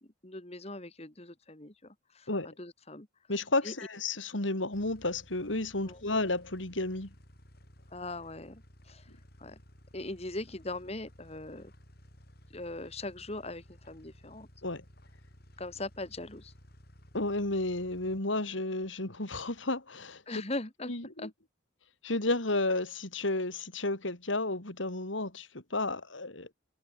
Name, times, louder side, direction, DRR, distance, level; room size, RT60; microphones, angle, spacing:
voice 1, 0.0-3.1 3.6-3.7 5.8-6.0 7.9-9.1 9.4-9.6 9.9-11.7 12.5-14.5 15.6-16.5 20.3-20.9 21.2-21.3, left 2 dB, 35° left, 2.2 m, -40 dB
voice 2, 3.3-7.1 14.6-14.8 17.1-20.4 20.9-21.3 22.0-26.5, left 2 dB, 85° left, 3.6 m, -32 dB
sound 1, 4.7-18.2, equal, 55° left, 6.3 m, -56 dB
head